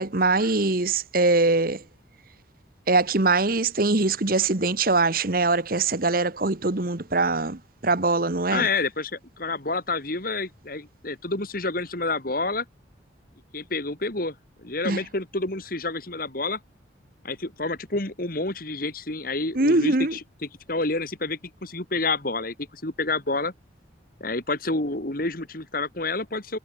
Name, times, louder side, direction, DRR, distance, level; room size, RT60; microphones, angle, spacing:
voice 1, 0.0-1.8 2.9-8.7 14.8-15.0 19.5-20.1, right 3 dB, 50° right, 1.3 m, -22 dB
voice 2, 8.5-12.6 13.5-14.3 14.6-16.6 17.2-20.2 20.7-23.5 24.2-26.6, left 3 dB, 50° left, 2.5 m, -29 dB
head